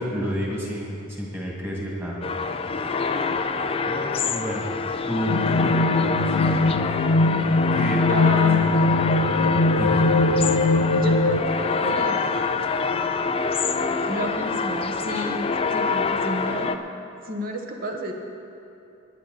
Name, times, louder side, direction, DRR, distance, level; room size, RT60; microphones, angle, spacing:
voice 1, 0.0-2.2 3.9-4.6 5.1-6.4 7.7-8.0 9.7-10.0, equal, 10° right, -4 dB, 2.2 m, -30 dB
sound 1, 2.2-16.8, left 5 dB, 25° left, 0.4 m, -26 dB
sound 2, 5.3-11.4, left 2 dB, 75° left, 0.6 m, -21 dB
voice 2, 8.1-8.7 10.9-12.2 14.1-16.8 17.2-18.1, right 1 dB, 40° right, 2 dB, 1.2 m, -31 dB
17.5 x 10.5 x 4.1 m, 2.7 s
head